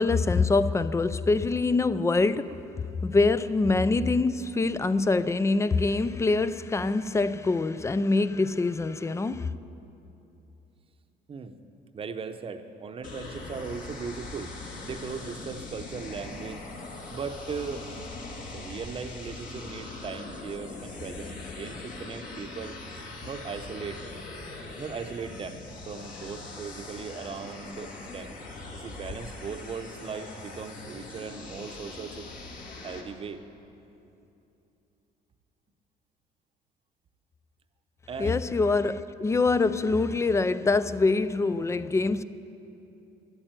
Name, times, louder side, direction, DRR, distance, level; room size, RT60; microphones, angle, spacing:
voice 1, 0.0-2.6 3.0-9.5 38.2-42.2, left 3 dB, 15° left, 0.3 m, -24 dB
voice 2, 4.0-4.3 11.3-11.6 11.9-14.5 14.8-16.7 17.1-17.9 18.5-22.8 23.2-24.0 24.8-28.3 28.7-32.3 32.8-33.4 38.1-38.4, right 5 dB, 35° right, 0.8 m, -38 dB
sound 1, 13.0-33.0, left 2 dB, 55° left, 2.1 m, -41 dB
11.5 x 8.9 x 9.0 m
cardioid pair, 110°, 17 cm